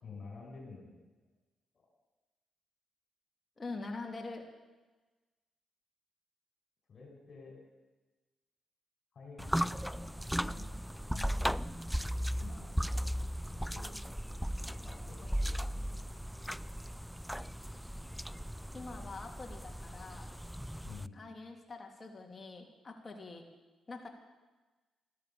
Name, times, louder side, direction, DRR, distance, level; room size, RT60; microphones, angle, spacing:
voice 1, 0.0-0.9 6.9-7.5 9.1-10.7 11.1-11.6 12.0-13.2 13.7-13.9 14.2-14.3 14.8-15.9 16.4-16.5 20.8-21.2, left 4 dB, 55° left, -1 dB, 5.1 m, -50 dB
voice 2, 3.6-4.4 18.7-20.3 21.1-23.4 23.9-24.1, left 3 dB, 35° left, 2 dB, 3.0 m, -44 dB
sound 1, 9.4-21.1, equal, ahead, 0.4 m, -37 dB
14.0 x 12.5 x 7.1 m, 1.2 s
supercardioid pair, 60°, 0 cm